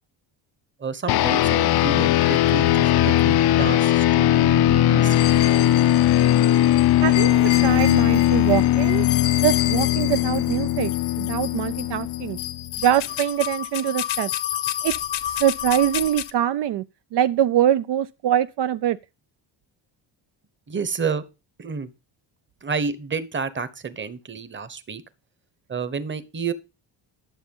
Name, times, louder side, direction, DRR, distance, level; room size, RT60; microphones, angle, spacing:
voice 1, 0.8-5.2 20.7-21.2 21.6-21.9 22.6-25.0 25.7-26.5, right 5 dB, 25° right, 1.1 m, -30 dB
sound 1, 1.1-12.8, left 13 dB, 55° left, 0.6 m, -19 dB
sound 2, 5.1-16.3, left 13 dB, 85° left, 1.3 m, -31 dB
voice 2, 7.0-9.1 9.4-10.9 11.2-12.4 12.8-14.3 14.8-14.9 15.3-16.8 17.1-19.0, right 11 dB, 65° right, 0.6 m, -23 dB
11.5 x 6.9 x 5.4 m
cardioid pair, 120°, 45 cm